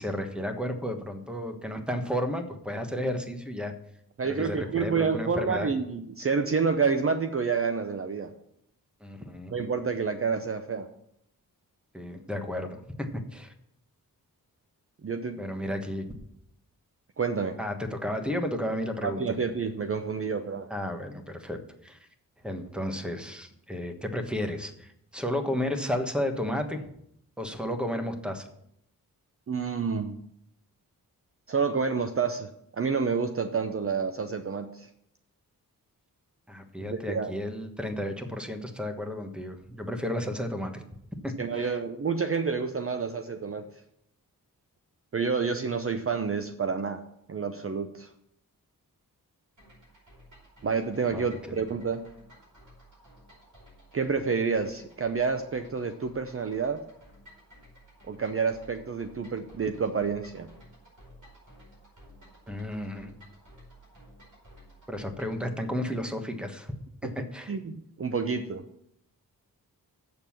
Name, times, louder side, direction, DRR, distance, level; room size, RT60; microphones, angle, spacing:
voice 1, 0.0-3.7 4.2-5.7 9.0-9.5 11.9-12.8 13.1-13.5 15.4-16.1 17.6-19.2 20.7-22.0 22.4-26.8 27.4-28.5 36.5-40.8 41.2-41.8 51.1-51.6 62.5-63.1 64.9-66.7 67.1-67.5, left 1 dB, 5° right, 5 dB, 1.3 m, -33 dB
voice 2, 4.2-8.3 9.5-10.9 15.0-15.4 17.2-17.6 19.0-20.7 29.5-30.2 31.5-34.9 36.8-37.3 41.4-43.7 45.1-47.0 47.3-48.1 50.6-52.0 53.9-56.8 58.1-60.5 67.0-67.1 67.5-68.6, right 5 dB, 40° right, 8 dB, 0.6 m, -29 dB
sound 1, 49.6-65.4, equal, 55° right, 4.9 m, -54 dB
7.8 x 6.9 x 7.3 m, 0.75 s
wide cardioid pair, 95°, 36 cm